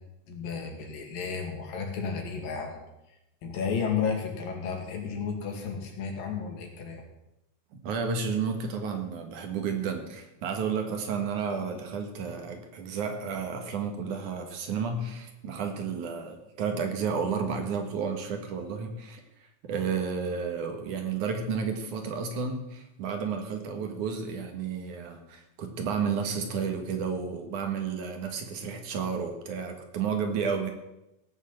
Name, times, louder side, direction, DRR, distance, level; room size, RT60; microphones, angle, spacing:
voice 1, 0.3-2.8 3.4-7.0, left 6 dB, 85° left, 2 dB, 4.1 m, -32 dB
voice 2, 7.8-19.2 19.6-30.7, right 6 dB, 65° right, 5 dB, 3.0 m, -32 dB
17.0 x 7.4 x 7.5 m, 0.89 s
omnidirectional pair, 3.9 m